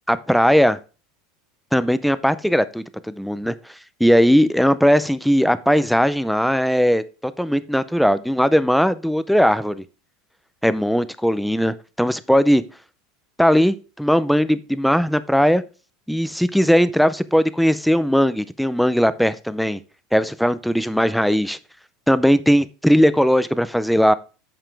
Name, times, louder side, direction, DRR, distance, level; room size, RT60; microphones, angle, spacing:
voice 1, 0.1-0.8 1.7-3.5 4.0-9.8 10.6-12.6 13.4-15.6 16.1-19.8 20.1-21.6 22.1-24.1, equal, ahead, 15 dB, 0.4 m, -18 dB
8.9 x 7.2 x 3.4 m, 0.33 s
supercardioid pair, 165°, 0 cm